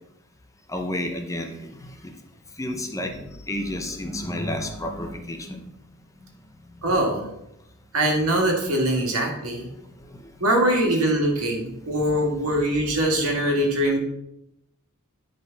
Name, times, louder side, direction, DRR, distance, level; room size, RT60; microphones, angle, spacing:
voice 1, 0.7-2.1 2.6-5.7 10.0-10.3, left 1 dB, 15° left, 4 dB, 0.8 m, -31 dB
voice 2, 6.8-7.2 7.9-9.7 10.4-14.0, right 1 dB, 75° right, 0 dB, 2.0 m, -22 dB
10.5 x 5.1 x 4.0 m, 0.83 s
head